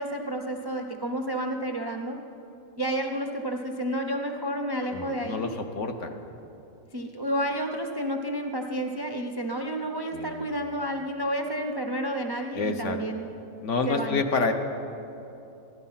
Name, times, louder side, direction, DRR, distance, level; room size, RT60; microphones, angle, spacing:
voice 1, 0.0-2.2 2.8-5.5 6.9-13.3 13.9-14.2, right 1 dB, 30° right, 2 dB, 0.4 m, -30 dB
voice 2, 4.9-6.2 10.1-10.6 12.5-13.0 13.6-14.5, left 4 dB, 60° left, 5 dB, 1.2 m, -28 dB
14.5 x 12.0 x 5.7 m, 2.9 s
omnidirectional pair, 1.5 m